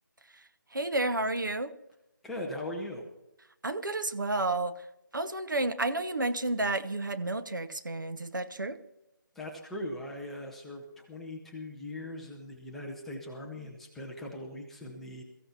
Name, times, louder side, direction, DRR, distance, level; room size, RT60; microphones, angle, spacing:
voice 1, 0.7-1.7 3.6-4.7 5.1-8.8, right 2 dB, 70° right, 10 dB, 1.0 m, -31 dB
voice 2, 2.2-3.0 9.3-15.2, left 1 dB, ahead, -1 dB, 0.6 m, -40 dB
22.5 x 14.5 x 2.9 m, 0.90 s
figure-of-eight pair, 155°, 11 cm